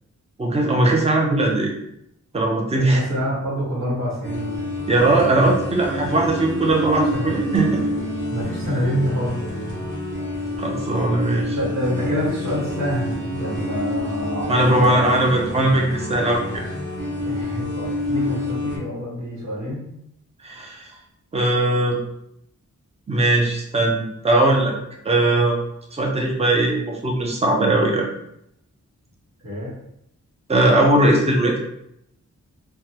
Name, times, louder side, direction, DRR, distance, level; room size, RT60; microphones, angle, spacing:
voice 1, 0.4-1.7 2.3-3.0 4.9-7.8 10.6-11.6 14.5-16.6 20.4-20.9 21.3-22.0 23.1-24.7 25.0-25.6 25.9-28.1 30.5-31.6, right 2 dB, 20° right, 0 dB, 0.6 m, -19 dB
voice 2, 2.7-4.6 6.9-7.5 8.3-9.7 11.5-15.0 17.1-19.9 29.4-29.7, equal, 60° right, -6 dB, 1.4 m, -27 dB
sound 1, 4.2-18.8, left 1 dB, 40° right, 1.2 m, -28 dB
3.5 x 2.2 x 2.9 m, 0.78 s
wide cardioid pair, 110°, 31 cm